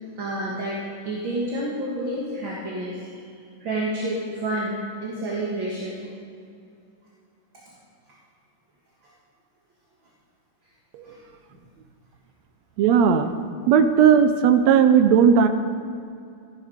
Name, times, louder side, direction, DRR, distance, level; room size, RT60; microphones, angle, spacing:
voice 1, 0.2-3.2 3.6-6.0 11.0-11.2, right 1 dB, 45° right, -4 dB, 2.2 m, -29 dB
voice 2, 12.8-13.3 13.7-15.5, right 7 dB, 75° right, 9 dB, 1.8 m, -16 dB
15.5 x 12.0 x 5.1 m, 2.4 s
omnidirectional pair, 3.5 m